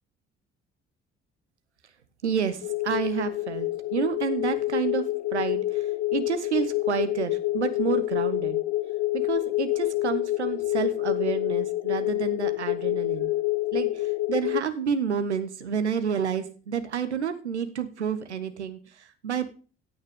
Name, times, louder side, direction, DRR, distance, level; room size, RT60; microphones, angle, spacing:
voice 1, 2.2-8.6 9.1-13.3 13.7-19.5, right 7 dB, 90° right, 10 dB, 0.9 m, -30 dB
sound 1, 2.6-14.6, left 17 dB, 55° left, 0.6 m, -27 dB
16.0 x 8.8 x 3.6 m, 0.37 s
figure-of-eight pair, 45°, 33 cm